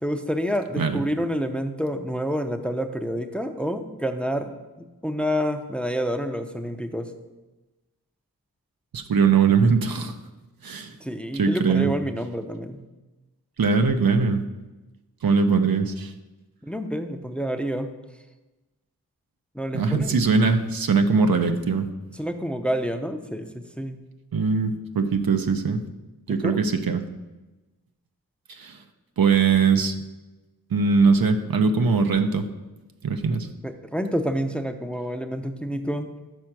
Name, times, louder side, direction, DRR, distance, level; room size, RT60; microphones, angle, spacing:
voice 1, 0.0-4.5 5.0-7.1 11.0-12.8 16.6-17.9 19.6-20.2 22.2-24.0 26.3-26.6 33.6-36.1, equal, 5° left, 7 dB, 0.6 m, -28 dB
voice 2, 8.9-10.1 10.6-10.9 11.3-11.9 13.6-14.4 15.2-16.1 19.7-21.9 24.3-25.8 26.3-27.0 28.5-28.8 29.2-29.9 30.7-32.5 33.0-33.5, right 5 dB, 70° right, 6 dB, 0.7 m, -21 dB
6.3 x 4.4 x 5.9 m, 1.1 s
cardioid pair, 40°, 37 cm